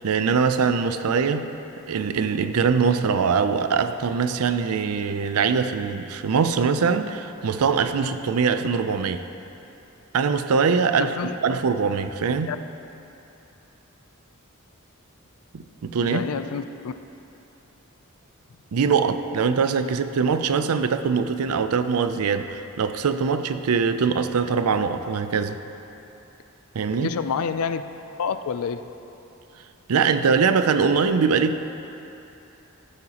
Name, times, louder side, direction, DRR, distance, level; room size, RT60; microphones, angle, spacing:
voice 1, 0.0-1.5 1.9-9.2 10.1-11.1 11.4-12.5 15.5-16.2 18.7-25.6 26.7-27.1 29.9-31.6, right 5 dB, 85° right, 10 dB, 0.5 m, -22 dB
voice 2, 11.0-11.4 12.5-12.6 16.0-16.9 26.9-27.8 28.2-28.9, left 6 dB, 80° left, 11 dB, 0.4 m, -28 dB
14.5 x 7.9 x 2.9 m, 2.9 s
head